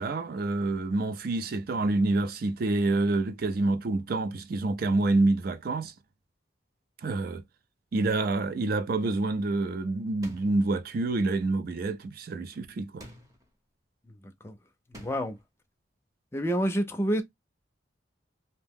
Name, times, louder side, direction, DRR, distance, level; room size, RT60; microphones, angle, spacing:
voice 1, 0.0-5.9 7.0-7.4 7.9-13.0, right 2 dB, 55° right, 0.4 m, -27 dB
sound 1, 10.2-10.8 13.0-13.5 14.9-15.4, equal, 20° right, 0.8 m, -48 dB
voice 2, 14.2-14.6 14.9-15.4 16.3-17.2, equal, 15° left, 0.5 m, -28 dB
2.7 x 2.1 x 3.5 m
head